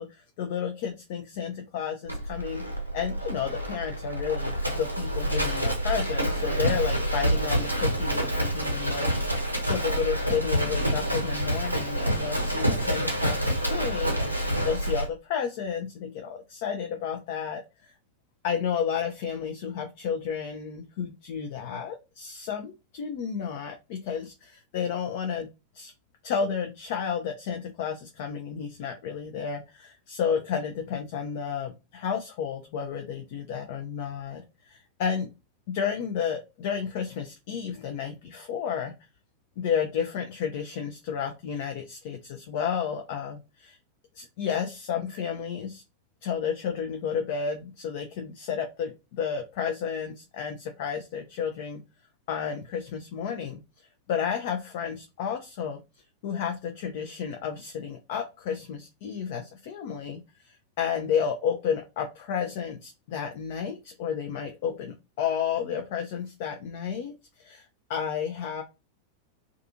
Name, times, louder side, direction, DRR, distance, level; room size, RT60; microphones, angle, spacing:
voice 1, 0.0-2.7 2.9-17.9 18.4-25.5 25.7-25.9 26.2-35.3 35.7-38.9 39.6-43.8 44.1-45.8 46.2-51.8 52.3-55.8 56.2-68.6, left 7 dB, 50° left, 3 dB, 0.4 m, -32 dB
Livestock farm animals working animals, 2.1-15.1, right 1 dB, 85° right, 0.7 m, -27 dB
2.4 x 2.4 x 2.6 m, 0.26 s
figure-of-eight pair, 90°, 0 cm